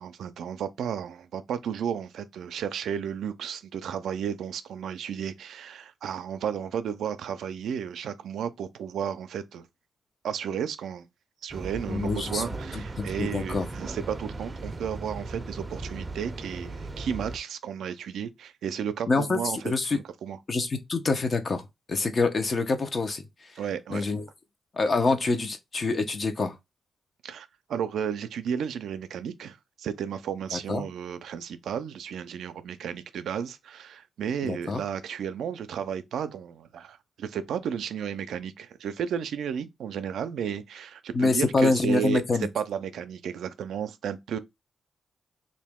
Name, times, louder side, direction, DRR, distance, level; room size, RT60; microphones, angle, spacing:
voice 1, 0.0-9.7 10.2-11.1 11.4-20.4 23.6-24.1 27.2-42.2 42.5-44.4, right 8 dB, 90° right, 0.4 m, -33 dB
sound 1, 11.5-17.4, right 3 dB, 30° right, 0.6 m, -37 dB
voice 2, 11.9-12.4 12.7-13.7 19.1-19.4 19.6-20.0 20.5-21.6 21.9-23.2 23.9-24.2 24.7-26.6 30.5-30.8 34.4-34.8 41.1-42.5, left 3 dB, 50° left, 0.7 m, -26 dB
2.9 x 2.6 x 3.5 m
cardioid pair, 75°, 0 cm